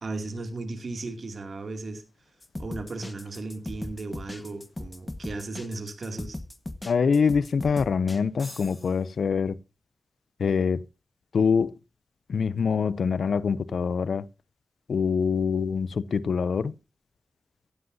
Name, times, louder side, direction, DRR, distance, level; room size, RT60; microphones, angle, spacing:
voice 1, 0.0-2.0 2.6-6.4, right 2 dB, 70° right, 2.5 m, -36 dB
sound 1, 2.4-8.9, left 1 dB, 25° left, 1.4 m, -38 dB
voice 2, 6.8-9.6 10.4-10.8 11.3-11.8 12.3-14.3 14.9-16.7, left 6 dB, 85° left, 0.5 m, -24 dB
15.5 x 11.0 x 2.7 m
cardioid pair, 40°, 0 cm